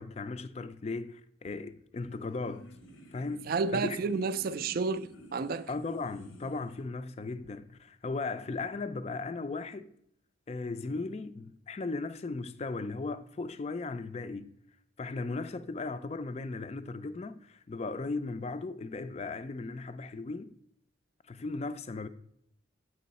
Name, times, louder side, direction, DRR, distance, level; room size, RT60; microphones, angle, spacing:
voice 1, 0.0-2.7 3.1-4.0 5.7-9.9 10.5-14.5 15.0-20.5 21.3-22.1, left 3 dB, 30° left, 0.4 m, -37 dB
sound 1, 1.9-6.8, equal, 85° left, 1.0 m, -53 dB
voice 2, 3.5-5.7, right 4 dB, 45° right, 0.3 m, -31 dB
7.5 x 5.4 x 4.0 m
head